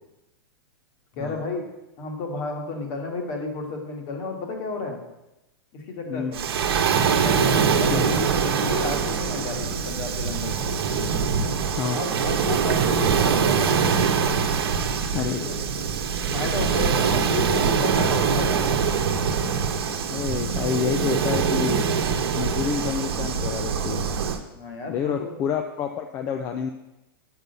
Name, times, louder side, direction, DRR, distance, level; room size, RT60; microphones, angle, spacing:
voice 1, 1.2-1.6 2.0-5.0 5.7-6.4 7.2-11.1 11.9-14.0 15.3-15.6 16.3-18.8 24.5-25.3, left 3 dB, 35° left, 2 dB, 1.5 m, -32 dB
Waves surf, 6.3-24.4, right 6 dB, 80° right, 0.9 m, -23 dB
voice 2, 15.1-15.5 20.1-21.8 22.4-24.0 24.9-26.7, left 7 dB, 20° left, 5 dB, 0.4 m, -28 dB
6.2 x 5.4 x 6.6 m, 0.94 s
supercardioid pair, 165°, 13 cm